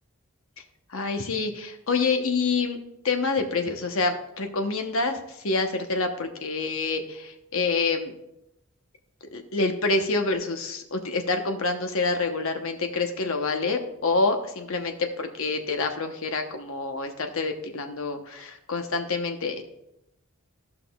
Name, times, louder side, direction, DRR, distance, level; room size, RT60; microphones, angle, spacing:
voice 1, 0.9-2.8 3.0-8.1 9.3-19.6, left 3 dB, 65° left, 5 dB, 0.9 m, -27 dB
14.0 x 5.8 x 2.3 m, 0.85 s
head